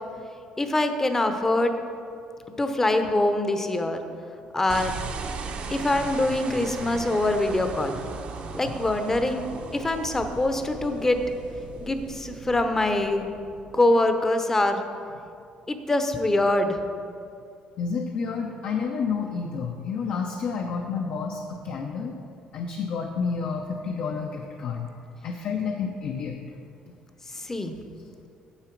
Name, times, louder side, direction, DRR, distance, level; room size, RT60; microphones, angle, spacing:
voice 1, 0.6-1.7 2.6-4.0 4.5-5.0 5.7-8.0 8.5-9.4 9.7-11.2 11.8-13.3 13.7-14.8 15.7-16.8 27.3-27.7, left 2 dB, 15° left, 7 dB, 0.7 m, -24 dB
sound 1, 4.7-14.1, right 5 dB, 55° right, 0.8 m, -38 dB
voice 2, 17.8-22.2 22.5-24.9 25.2-26.4, left 5 dB, 60° left, 2 dB, 0.7 m, -30 dB
9.7 x 6.8 x 4.5 m, 2.4 s
cardioid pair, 120°, 2 cm